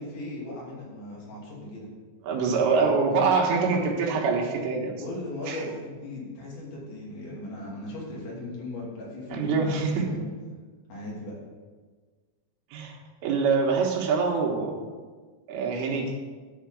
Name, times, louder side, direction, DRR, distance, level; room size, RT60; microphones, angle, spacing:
voice 1, 0.0-1.9 5.0-10.2 10.9-11.4, left 1 dB, 90° left, -5 dB, 5.1 m, -37 dB
voice 2, 2.2-5.0 5.5-5.6 9.3-10.0 12.7-14.9 15.5-16.2, right 4 dB, 90° right, 0 dB, 3.6 m, -25 dB
10.0 x 4.7 x 7.7 m, 1.5 s
omnidirectional pair, 5.1 m